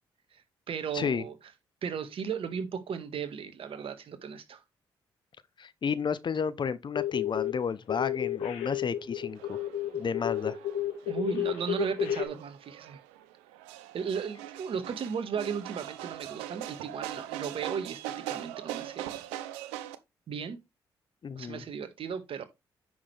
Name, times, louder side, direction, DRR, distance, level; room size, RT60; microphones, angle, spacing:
voice 1, 0.3-1.3 1.8-4.6 11.1-13.0 13.9-19.2 20.3-20.6 21.4-22.4, right 7 dB, 60° right, 1.8 m, -36 dB
voice 2, 5.6-9.6 9.9-10.6 21.2-21.6, left 6 dB, 50° left, 0.9 m, -32 dB
sound 1, 6.9-7.6 7.9-12.3, left 10 dB, 80° left, 1.7 m, -31 dB
sound 2, 9.4-20.0, right 13 dB, 85° right, 0.7 m, -41 dB
9.4 x 6.4 x 3.4 m
hypercardioid pair, 45°, 10 cm